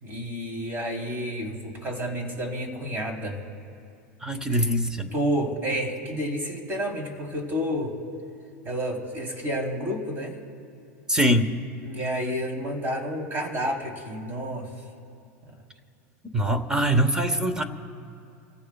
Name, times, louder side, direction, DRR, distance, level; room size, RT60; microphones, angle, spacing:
voice 1, 0.0-3.4 4.5-4.7 5.1-7.9 8.7-10.4 11.8-14.7 15.4-15.5, equal, 25° right, 1 dB, 3.7 m, -30 dB
voice 2, 4.2-5.1 11.1-11.6 16.3-17.6, right 1 dB, 10° right, 9 dB, 1.1 m, -23 dB
29.5 x 16.0 x 2.4 m, 2.6 s
supercardioid pair, 125°, 8 cm